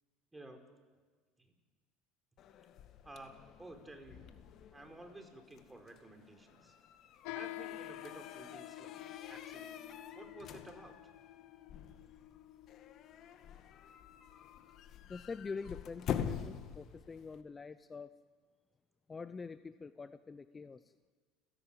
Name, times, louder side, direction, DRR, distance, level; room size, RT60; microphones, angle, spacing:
voice 1, 0.3-0.6 1.4-1.5 3.0-4.4 4.7-6.8 7.3-9.0 9.2-9.8 10.1-11.1, right 2 dB, 15° right, 5 dB, 4.9 m, -53 dB
sound 1, 2.4-17.4, left 8 dB, 50° left, 1.9 m, -46 dB
sound 2, 7.2-15.0, left 15 dB, 70° left, 1.0 m, -49 dB
voice 2, 15.1-18.2 19.1-20.8, left 4 dB, 25° left, 13 dB, 0.8 m, -45 dB
29.5 x 16.0 x 8.9 m, 1.5 s
hypercardioid pair, 80°, 0 cm